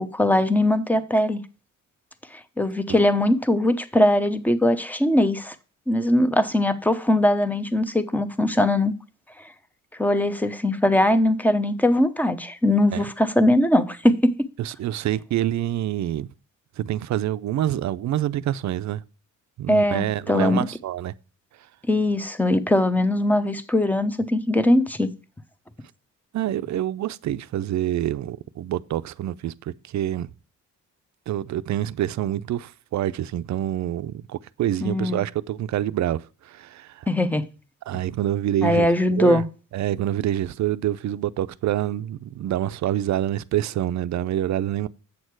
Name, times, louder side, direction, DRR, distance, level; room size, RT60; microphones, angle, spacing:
voice 1, 0.0-1.4 2.6-5.5 5.9-8.9 10.0-14.5 19.7-20.7 21.9-25.1 34.8-35.2 37.1-37.4 38.6-39.4, left 1 dB, 5° left, 0.8 m, -21 dB
voice 2, 14.6-16.3 16.8-19.0 19.6-21.1 26.3-30.3 31.3-37.1 37.9-39.4 39.7-44.9, right 12 dB, 60° right, 0.5 m, -26 dB
8.4 x 6.5 x 4.6 m
cardioid pair, 130°, 31 cm